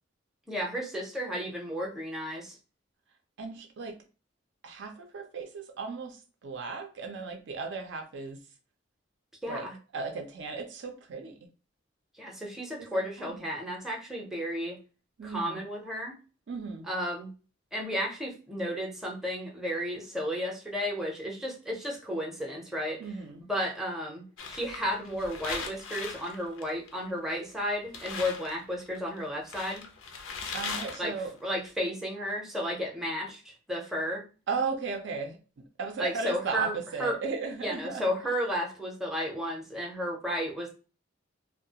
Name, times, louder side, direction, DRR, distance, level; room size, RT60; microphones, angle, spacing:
voice 1, 0.5-2.6 9.4-9.7 12.2-14.8 15.2-16.1 16.8-17.3 17.7-23.0 23.4-29.8 31.0-31.1 31.4-34.2 36.0-37.1 37.6-40.7, equal, ahead, -2 dB, 0.5 m, -33 dB
voice 2, 3.4-4.0 4.6-8.4 9.5-9.7 9.9-11.4 12.8-13.4 15.2-15.6 16.5-16.9 23.0-23.4 30.5-31.3 34.5-38.1, right 4 dB, 65° right, 4 dB, 0.4 m, -36 dB
sound 1, 24.4-27.2 27.6-27.7 27.9-31.5, left 5 dB, 85° left, 0.5 m, -39 dB
2.3 x 2.1 x 2.7 m, 0.35 s
head